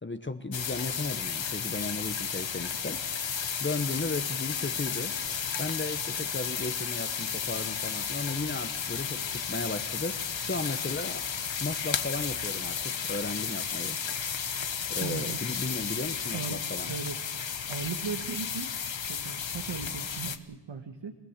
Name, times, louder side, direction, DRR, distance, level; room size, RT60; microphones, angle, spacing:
voice 1, 0.0-3.0 3.6-5.1 5.6-11.3 11.6-14.0 14.9-16.9, left 3 dB, 25° left, 8 dB, 1.0 m, -35 dB
sound 1, 0.5-20.4, left 7 dB, 65° left, 1.2 m, -33 dB
voice 2, 15.0-15.4 16.3-17.2 17.7-18.7 19.0-21.1, right 6 dB, 65° right, 7 dB, 1.4 m, -37 dB
27.0 x 16.0 x 7.3 m, 1.3 s
wide cardioid pair, 105°, 48 cm